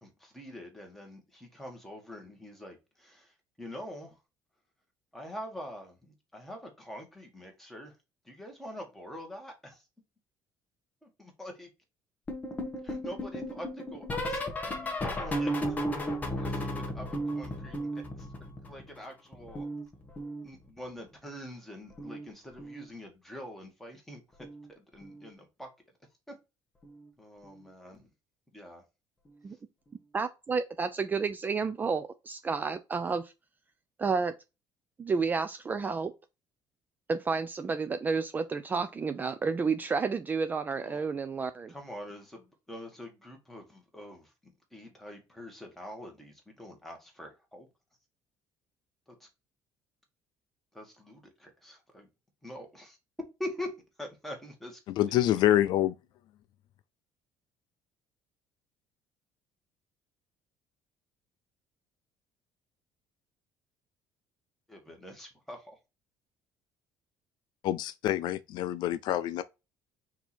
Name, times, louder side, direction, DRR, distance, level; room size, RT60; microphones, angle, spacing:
voice 1, 0.0-4.2 5.1-7.9 8.2-9.8 11.0-11.7 12.8-15.8 16.3-18.3 18.6-19.7 20.4-25.7 26.3-26.4 27.2-28.1 28.5-28.8 40.7-41.0 41.7-47.7 49.1-49.3 50.7-52.1 52.4-53.0 53.4-53.7 54.0-54.8 64.7-65.8, left 1 dB, 5° left, 1.5 m, -45 dB
sound 1, 12.3-19.0 19.3-20.9 21.9-22.3 22.5-22.9 24.4-24.7 25.0-25.3 26.8-26.9, equal, 20° left, 1.1 m, -35 dB
voice 2, 30.1-33.3 34.0-34.3 35.0-36.1 37.1-41.7, right 5 dB, 20° right, 0.4 m, -31 dB
voice 3, 55.0-55.9 67.6-69.4, left 13 dB, 65° left, 0.3 m, -26 dB
4.5 x 2.8 x 4.2 m
cardioid pair, 135°, 8 cm